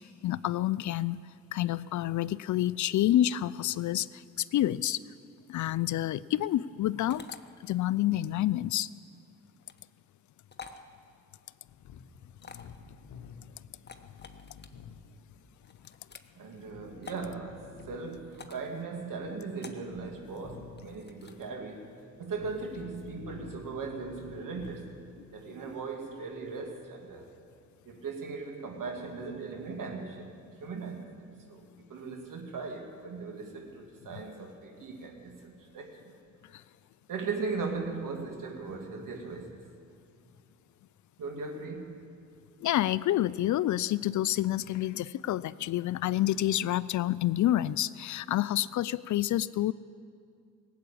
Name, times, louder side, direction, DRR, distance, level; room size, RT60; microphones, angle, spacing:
voice 1, 0.2-1.2 1.5-5.0 5.5-7.2 7.6-8.9 36.5-36.6 42.6-49.7, left 13 dB, 55° left, 19 dB, 0.4 m, -28 dB
sound 1, 7.1-7.4 9.6-9.8 10.5-10.8 12.4-12.8 13.7-14.7 15.6-16.3 17.0-17.3 18.3-18.7 19.6-19.9 20.8-21.4, left 5 dB, 30° left, 1.2 m, -48 dB
sound 2, 11.7-26.7, left 6 dB, 70° left, 1.0 m, -52 dB
voice 2, 16.4-21.9 22.2-27.3 27.8-31.1 31.5-36.0 37.1-39.6 41.2-42.0, right 4 dB, 60° right, 2 dB, 2.5 m, -38 dB
18.0 x 8.3 x 8.6 m, 2.3 s
hypercardioid pair, 50°, 36 cm